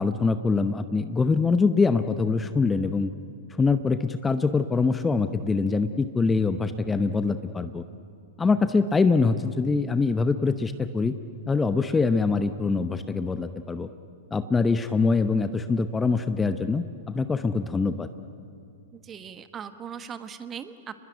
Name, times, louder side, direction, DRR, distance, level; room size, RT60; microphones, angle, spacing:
voice 1, 0.0-3.1 3.6-7.8 8.4-11.1 11.5-13.9 14.3-18.1, left 4 dB, 15° left, 11 dB, 0.9 m, -24 dB
voice 2, 18.9-20.9, right 7 dB, 25° right, 10 dB, 1.5 m, -39 dB
30.0 x 21.0 x 9.5 m, 2.5 s
figure-of-eight pair, 100°, 0 cm